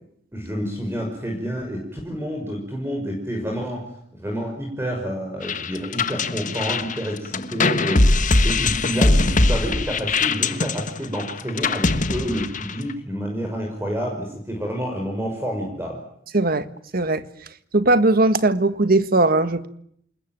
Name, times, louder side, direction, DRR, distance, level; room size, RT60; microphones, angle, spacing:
voice 1, 0.3-3.9 4.2-16.0, equal, 15° right, 2 dB, 5.9 m, -29 dB
sound 1, 5.4-12.9, left 2 dB, 45° left, 1.4 m, -21 dB
voice 2, 16.3-16.6 16.9-17.2 17.7-19.7, right 2 dB, 55° right, 12 dB, 1.6 m, -18 dB
28.0 x 20.5 x 9.2 m, 0.69 s
head